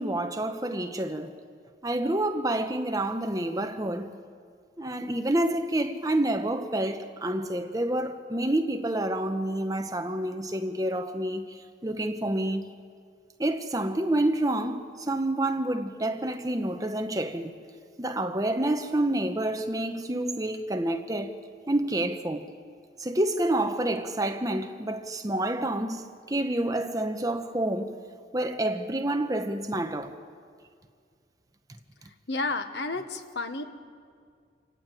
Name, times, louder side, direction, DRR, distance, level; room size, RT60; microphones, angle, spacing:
voice 1, 0.0-1.4 1.8-4.1 4.8-12.7 13.4-17.5 18.0-21.4 21.7-22.5 23.0-28.0 28.3-30.1, right 1 dB, 20° right, 1.0 m, -28 dB
voice 2, 32.3-33.6, left 3 dB, 70° left, 1.4 m, -31 dB
27.0 x 14.5 x 9.1 m
head